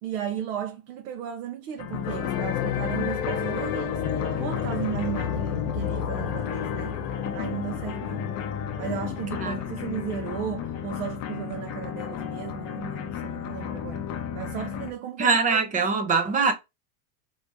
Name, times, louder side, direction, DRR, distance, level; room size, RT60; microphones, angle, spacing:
voice 1, 0.0-6.9 7.3-8.3 8.8-14.0 14.3-15.4 15.7-16.1, right 10 dB, 70° right, 0.8 m, -35 dB
sound 1, 1.8-14.9, left 8 dB, 35° left, 0.6 m, -34 dB
sound 2, 2.0-11.7, left 9 dB, 85° left, 0.8 m, -32 dB
voice 2, 9.4-9.8 15.2-16.5, right 4 dB, 20° right, 0.4 m, -23 dB
3.4 x 2.8 x 2.8 m
supercardioid pair, 140°, 47 cm